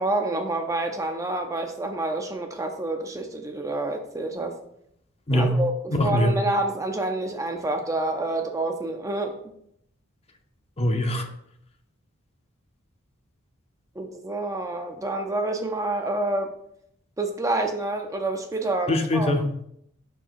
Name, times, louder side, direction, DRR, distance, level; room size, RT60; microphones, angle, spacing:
voice 1, 0.0-4.6 5.3-9.5 14.0-16.5 17.2-19.3, right 2 dB, 15° right, 4 dB, 0.5 m, -28 dB
voice 2, 5.3-5.6 5.9-6.3 10.8-11.3 18.9-19.6, left 1 dB, 30° left, 5 dB, 0.7 m, -23 dB
5.8 x 4.4 x 4.5 m, 0.73 s
head